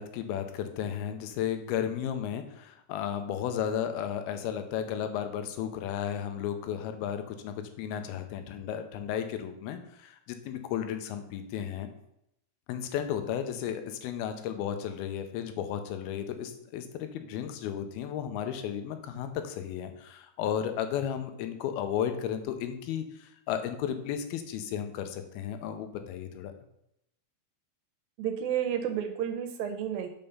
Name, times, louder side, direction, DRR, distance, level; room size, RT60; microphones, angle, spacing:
voice 1, 0.0-11.9 12.7-26.5, left 9 dB, 85° left, 8 dB, 2.6 m, -34 dB
voice 2, 28.2-30.1, right 9 dB, 80° right, 6 dB, 2.4 m, -31 dB
5.7 x 5.3 x 5.4 m, 0.78 s
omnidirectional pair, 4.3 m